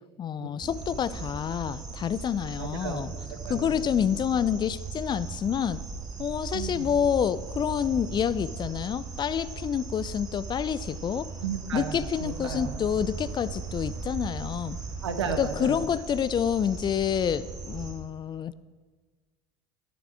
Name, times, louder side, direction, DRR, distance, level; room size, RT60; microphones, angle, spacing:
voice 1, 0.2-3.1 3.5-5.8 6.2-11.3 11.7-14.8 15.4-18.5, left 8 dB, 30° left, 16 dB, 0.5 m, -28 dB
sound 1, 0.6-17.9, right 4 dB, 30° right, 3.6 m, -38 dB
voice 2, 2.6-3.7 6.5-6.9 11.4-12.9 15.0-15.9, right 6 dB, 80° right, 7 dB, 1.4 m, -34 dB
14.0 x 7.0 x 7.6 m, 1.5 s
hypercardioid pair, 70°, 14 cm